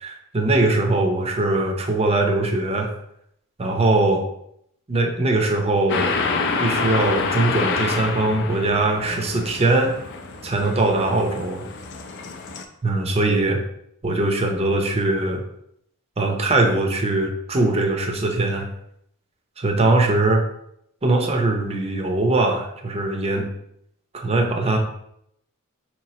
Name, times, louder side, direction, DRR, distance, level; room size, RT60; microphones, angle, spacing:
voice 1, 0.0-2.9 3.6-4.3 4.9-6.2 6.6-9.9 10.4-11.6 12.8-13.6 14.0-15.4 16.2-18.7 19.6-20.4 21.0-23.5 24.1-24.8, right 2 dB, 25° right, 2 dB, 0.6 m, -21 dB
sound 1, 5.9-12.6, left 4 dB, 50° left, 0.4 m, -27 dB
4.7 x 3.0 x 2.8 m, 0.73 s
head